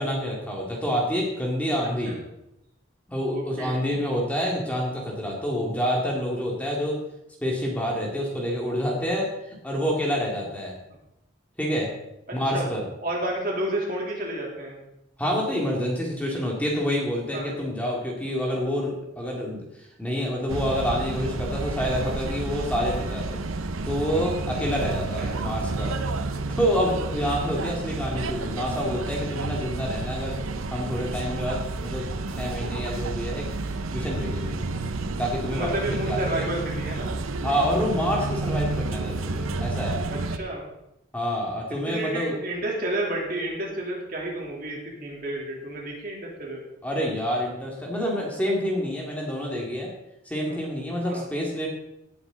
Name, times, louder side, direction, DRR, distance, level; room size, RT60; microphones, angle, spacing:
voice 1, 0.0-2.2 3.1-7.0 7.4-10.7 11.6-11.9 12.3-12.8 15.2-23.4 23.9-26.0 26.5-30.3 30.7-32.1 32.4-33.5 33.9-34.6 35.2-36.4 37.4-40.0 41.1-42.4 46.8-49.9 50.3-51.7, equal, 5° left, -2 dB, 2.2 m, -27 dB
voice 2, 1.8-2.1 3.3-3.9 12.3-12.7 13.0-14.8 17.3-17.5 25.2-25.3 35.5-37.1 40.1-40.7 41.9-46.6 50.5-50.6 51.1-51.2, right 1 dB, 45° right, -2 dB, 3.2 m, -31 dB
sound 1, 20.5-40.4, right 3 dB, 90° right, 0.8 m, -30 dB
18.0 x 8.0 x 3.9 m, 0.84 s
head